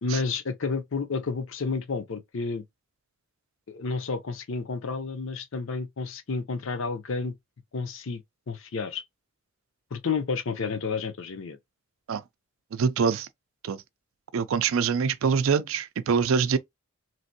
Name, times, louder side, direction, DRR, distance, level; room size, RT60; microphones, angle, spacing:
voice 1, 0.0-2.6 3.7-7.3 7.7-9.0 9.9-11.6, left 4 dB, 65° left, 0.6 m, -31 dB
voice 2, 12.7-13.3 13.6-13.8 14.3-16.6, right 6 dB, 70° right, 0.4 m, -24 dB
3.2 x 2.6 x 2.6 m
head